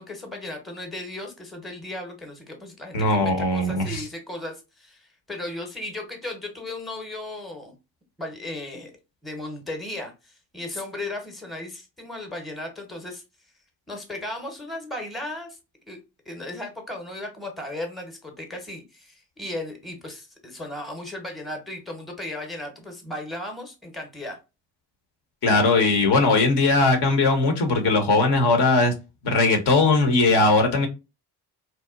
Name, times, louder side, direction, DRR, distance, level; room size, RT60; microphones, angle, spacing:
voice 1, 0.0-7.7 8.2-8.9 9.2-13.2 13.9-15.6 15.9-16.0 16.3-24.4, left 1 dB, ahead, 0.8 m, -36 dB
voice 2, 2.9-4.0 25.4-28.9 29.2-30.9, left 3 dB, 55° left, 0.9 m, -19 dB
2.8 x 2.1 x 2.4 m
hypercardioid pair, 55°, 49 cm